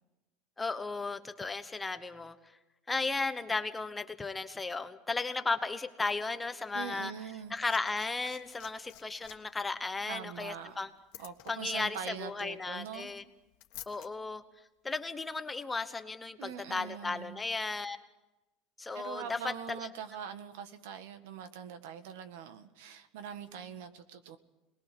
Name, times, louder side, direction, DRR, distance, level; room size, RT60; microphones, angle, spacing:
voice 1, 0.6-2.4 2.9-7.1 7.5-10.9 11.5-13.2 13.9-14.4 14.8-18.0 18.8-19.8, left 3 dB, 10° left, 9 dB, 1.0 m, -35 dB
voice 2, 6.7-7.6 10.1-10.8 11.2-13.1 16.4-17.4 18.9-24.4, right 8 dB, 85° right, 9 dB, 1.8 m, -43 dB
Liquid, 7.2-14.1 15.2-15.3, left 16 dB, 60° left, 1.7 m, -53 dB
27.0 x 20.5 x 6.1 m, 1.0 s
cardioid pair, 155°, 0 cm